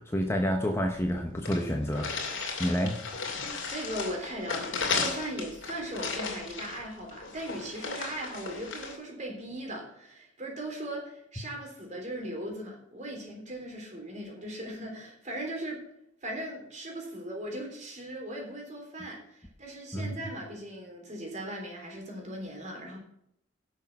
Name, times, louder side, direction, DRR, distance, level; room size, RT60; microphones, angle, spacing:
voice 1, 0.0-2.1 2.6-3.0 19.9-20.1, equal, 10° left, 2 dB, 1.0 m, -28 dB
sound 1, 0.7-0.8 1.1-1.2 1.4-9.0, left 4 dB, 65° left, 2.6 m, -35 dB
voice 2, 3.7-15.8 16.2-23.0, right 1 dB, 35° right, 0 dB, 3.4 m, -38 dB
11.0 x 6.4 x 6.0 m, 0.74 s
head